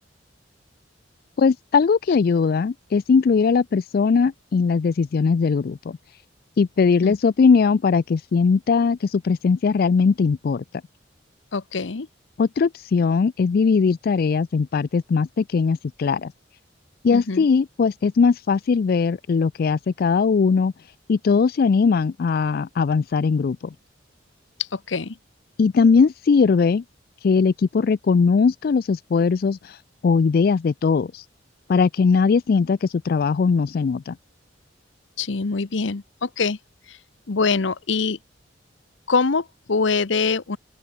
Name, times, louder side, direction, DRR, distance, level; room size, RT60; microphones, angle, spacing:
voice 1, 1.4-6.0 6.6-10.6 12.4-16.3 17.0-20.7 21.1-23.7 25.6-26.8 27.2-31.3 31.7-34.2, left 5 dB, 50° left, 0.3 m, -20 dB
voice 2, 11.5-12.1 17.1-17.5 24.6-25.2 35.2-36.6 36.9-37.0 37.3-38.2 39.1-40.6, left 4 dB, 75° left, 0.8 m, -24 dB
open air
head